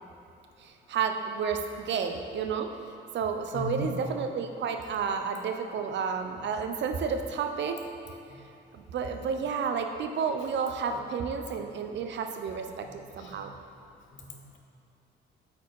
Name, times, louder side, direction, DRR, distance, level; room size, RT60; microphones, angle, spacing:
voice 1, 0.6-2.7 3.1-7.8 8.7-13.5, right 6 dB, 65° right, 6 dB, 0.7 m, -31 dB
voice 2, 3.5-3.9 8.3-8.4 13.2-13.5 14.1-14.6, left 2 dB, 70° left, 1 dB, 1.1 m, -37 dB
8.3 x 4.8 x 4.7 m, 2.8 s
cardioid pair, 90°, 20 cm